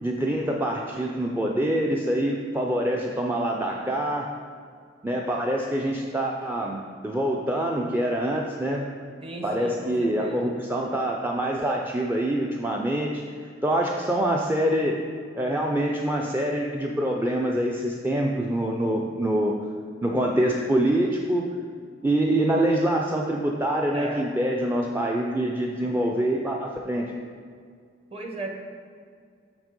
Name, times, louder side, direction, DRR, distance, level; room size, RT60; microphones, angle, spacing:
voice 1, 0.0-4.3 5.0-8.8 9.4-15.0 15.4-19.6 20.0-21.5 22.0-27.1, right 1 dB, 10° right, -1 dB, 0.4 m, -25 dB
voice 2, 9.2-10.5 23.9-24.3 25.8-26.0 28.1-28.5, right 2 dB, 30° right, 2 dB, 1.0 m, -36 dB
6.7 x 6.1 x 5.2 m, 2.1 s
head